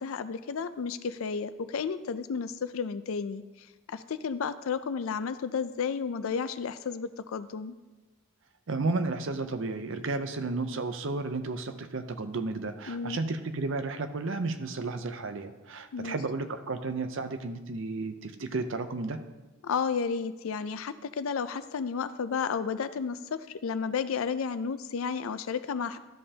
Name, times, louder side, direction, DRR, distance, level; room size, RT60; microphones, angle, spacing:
voice 1, 0.0-7.7 12.9-13.2 15.9-16.2 19.6-26.0, left 6 dB, 75° left, 13 dB, 0.4 m, -32 dB
voice 2, 8.7-19.2, right 3 dB, 65° right, 9 dB, 0.6 m, -33 dB
13.0 x 5.4 x 2.8 m, 1.1 s
head